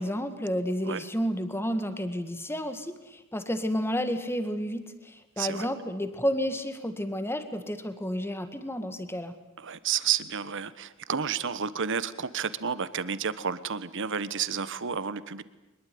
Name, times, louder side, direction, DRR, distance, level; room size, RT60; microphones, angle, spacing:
voice 1, 0.0-9.3, equal, 10° left, 9 dB, 1.9 m, -31 dB
voice 2, 9.6-15.4, right 7 dB, 60° right, 15 dB, 1.2 m, -31 dB
23.0 x 21.5 x 9.4 m, 1.0 s
head